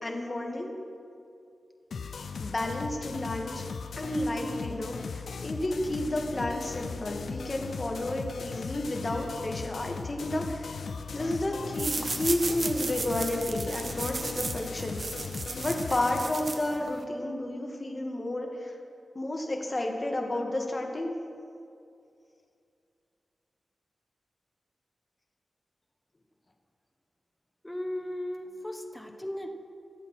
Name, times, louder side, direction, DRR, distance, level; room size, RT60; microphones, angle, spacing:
voice 1, 0.0-0.7 2.4-3.7 4.0-15.0 15.5-18.8 19.1-21.1, left 1 dB, 35° left, 1 dB, 1.9 m, -31 dB
sound 1, 1.9-16.2, left 5 dB, 90° left, 0.6 m, -38 dB
sound 2, 11.7-17.0, right 3 dB, 50° right, 1.1 m, -35 dB
voice 2, 27.6-29.5, left 1 dB, 10° left, 4 dB, 1.2 m, -36 dB
24.0 x 8.0 x 4.4 m, 2.5 s
wide cardioid pair, 75°, 0 cm